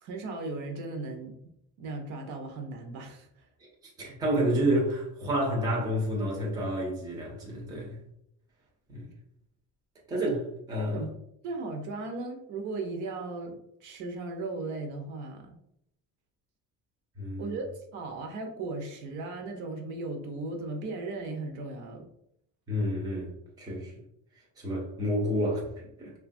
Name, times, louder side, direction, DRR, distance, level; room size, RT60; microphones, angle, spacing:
voice 1, 0.0-1.3 1.8-3.3 10.9-11.1 11.4-15.5 17.4-22.1, right 3 dB, 60° right, 3 dB, 0.6 m, -36 dB
voice 2, 3.6-8.0 8.9-9.1 10.1-11.1 17.2-17.6 22.7-23.3 23.6-23.9 24.6-26.1, equal, 10° right, -3 dB, 0.5 m, -30 dB
3.0 x 2.2 x 2.5 m, 0.74 s
cardioid pair, 175°, 34 cm